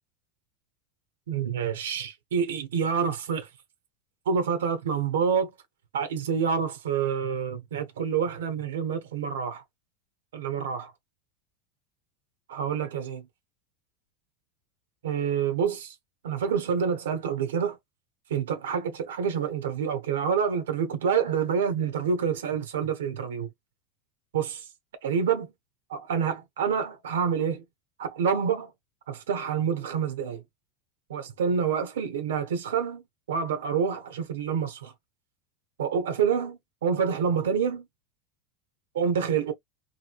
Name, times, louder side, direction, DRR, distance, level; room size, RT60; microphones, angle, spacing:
voice 1, 1.3-3.5 4.3-5.5 5.9-9.6 10.3-10.9 12.5-13.2 15.0-15.9 16.2-17.8 18.3-23.5 24.3-24.6 25.0-25.5 25.9-27.6 28.0-28.7 29.1-30.4 31.1-33.0 33.3-34.9 35.8-37.8 38.9-39.5, right 7 dB, 85° right, 0.7 m, -27 dB
3.0 x 2.6 x 2.4 m
hypercardioid pair, 105°, 0 cm